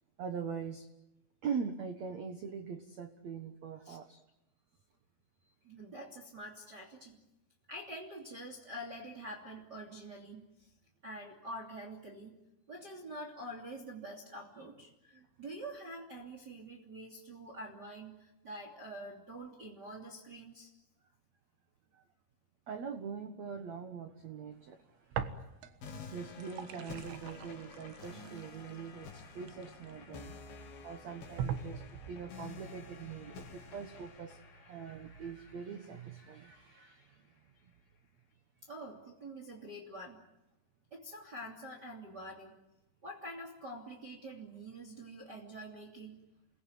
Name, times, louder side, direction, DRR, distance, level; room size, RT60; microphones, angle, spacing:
voice 1, 0.2-0.9 1.4-4.2 21.9-22.0 22.7-25.4 26.0-37.2, right 6 dB, 60° right, 7 dB, 1.9 m, -43 dB
voice 2, 5.6-7.2 7.7-10.7 11.0-12.3 12.7-20.7 25.9-26.1 38.6-40.2 40.9-42.6 43.0-46.2, right 1 dB, 25° right, 2 dB, 3.0 m, -46 dB
sound 1, 25.1-25.9 26.2-30.2 30.8-30.9 31.4-32.3, right 8 dB, 85° right, 3.8 m, -41 dB
sound 2, 25.8-36.8, left 5 dB, 60° left, 4.7 m, -51 dB
29.5 x 20.5 x 9.4 m, 0.93 s
omnidirectional pair, 5.0 m